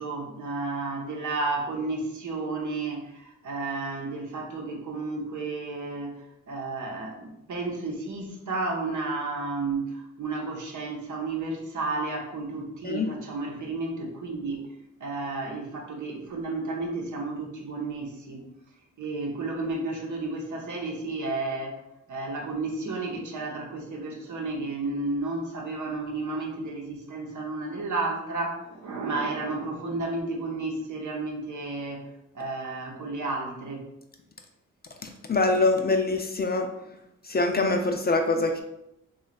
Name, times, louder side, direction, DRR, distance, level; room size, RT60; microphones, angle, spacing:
voice 1, 0.0-14.7 15.0-18.4 19.0-21.8 22.1-32.1 32.3-33.8, right 3 dB, 70° right, 1 dB, 0.8 m, -32 dB
voice 2, 35.0-36.7 37.2-38.6, left 3 dB, 30° left, 4 dB, 0.5 m, -24 dB
3.0 x 2.4 x 4.0 m, 0.86 s
cardioid pair, 60°, 31 cm